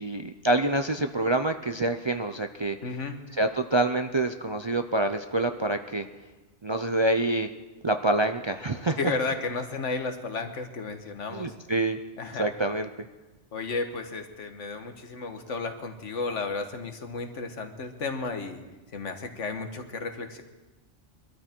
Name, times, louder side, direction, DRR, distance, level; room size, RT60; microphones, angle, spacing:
voice 1, 0.0-2.8 3.4-6.1 6.6-7.5 7.8-9.0 11.3-12.0 12.4-12.9, right 2 dB, 35° right, 7 dB, 0.4 m, -26 dB
voice 2, 2.8-3.2 9.0-11.6 12.2-12.5 13.5-18.6 18.9-20.4, left 4 dB, 85° left, 6 dB, 1.6 m, -33 dB
22.5 x 13.0 x 4.5 m, 1.2 s
omnidirectional pair, 1.2 m